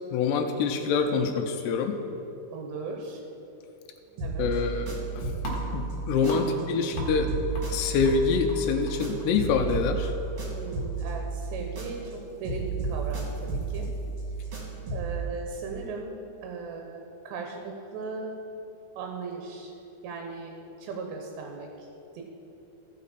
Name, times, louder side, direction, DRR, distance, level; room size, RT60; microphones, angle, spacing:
voice 1, 0.1-2.0 4.4-5.3 5.7-7.3 7.7-10.1, left 5 dB, 85° left, 5 dB, 2.6 m, -26 dB
voice 2, 2.5-3.2 4.1-4.5 6.2-6.4 10.5-13.9 14.9-18.3 19.0-19.7 20.0-21.9 22.1-22.2, right 4 dB, 80° right, 2 dB, 2.9 m, -38 dB
sound 1, 4.2-6.7 6.9-12.2 12.4-15.2, right 4 dB, 50° right, 2.4 m, -33 dB
sound 2, 4.8-11.6, equal, 55° left, 1.9 m, -44 dB
15.5 x 5.3 x 4.1 m, 3.0 s
omnidirectional pair, 5.1 m